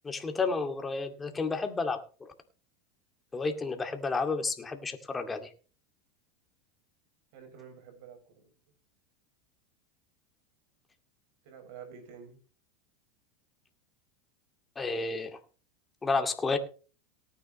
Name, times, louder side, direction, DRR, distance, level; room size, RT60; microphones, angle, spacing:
voice 1, 0.0-2.0 2.3-2.4 3.3-5.5 14.8-15.4 16.0-16.6, left 4 dB, 20° left, 6 dB, 2.3 m, -31 dB
voice 2, 7.3-8.5 11.4-12.4, right 7 dB, 65° right, 5 dB, 7.0 m, -49 dB
18.5 x 9.6 x 3.1 m, 0.37 s
hypercardioid pair, 100°, 0 cm